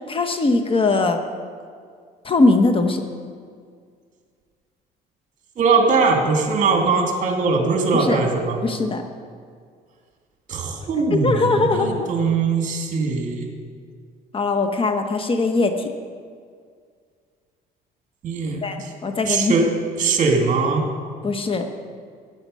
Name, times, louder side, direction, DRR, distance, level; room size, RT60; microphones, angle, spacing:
voice 1, 0.1-1.2 2.2-3.0 7.9-8.2 8.6-9.0 11.1-12.1 14.3-15.9 18.6-19.5 21.2-21.7, left 3 dB, 30° left, 7 dB, 1.0 m, -20 dB
voice 2, 5.6-8.6 10.5-13.5 18.2-18.9 19.2-19.7 20.0-20.8, right 4 dB, 50° right, 2 dB, 2.4 m, -21 dB
15.0 x 9.5 x 5.5 m, 2.1 s
cardioid pair, 110°, 17 cm